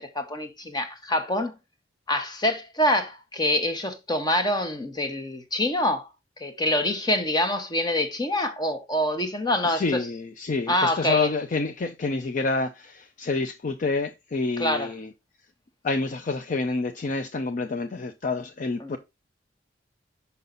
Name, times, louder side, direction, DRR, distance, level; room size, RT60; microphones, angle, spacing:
voice 1, 0.0-1.5 2.1-6.1 6.4-10.1 10.7-11.3 14.6-14.9 18.8-19.0, left 1 dB, 25° left, 1.1 m, -26 dB
voice 2, 9.6-15.1 15.8-19.0, left 3 dB, 45° left, 0.5 m, -28 dB
5.6 x 5.5 x 3.8 m
head